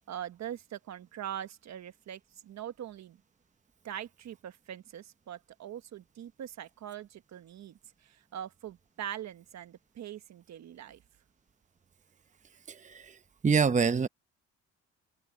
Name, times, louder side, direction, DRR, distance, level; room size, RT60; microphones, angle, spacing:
voice 1, 0.1-3.2 3.8-11.0, right 10 dB, 65° right, 1.3 m, -42 dB
voice 2, 12.7-14.1, right 5 dB, 25° right, 0.9 m, -27 dB
cardioid pair, 90°, 30 cm